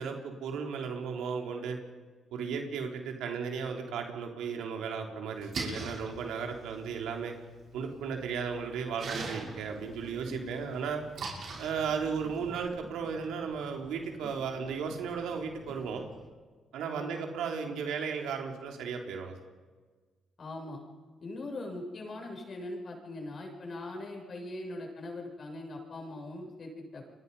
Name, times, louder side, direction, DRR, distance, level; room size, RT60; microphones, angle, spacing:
voice 1, 0.0-1.8 2.3-7.3 7.7-11.0 11.6-16.0 16.7-19.4, right 6 dB, 85° right, 3 dB, 3.5 m, -35 dB
Splash splatter, 5.3-12.6, right 4 dB, 60° right, 7.8 m, -43 dB
sound 1, 9.0-16.3, left 2 dB, 10° left, 4.1 m, -51 dB
voice 2, 20.4-20.8 21.2-27.1, left 2 dB, 45° left, 1 dB, 7.5 m, -41 dB
29.5 x 23.5 x 5.6 m, 1.4 s
cardioid pair, 90°, 0 cm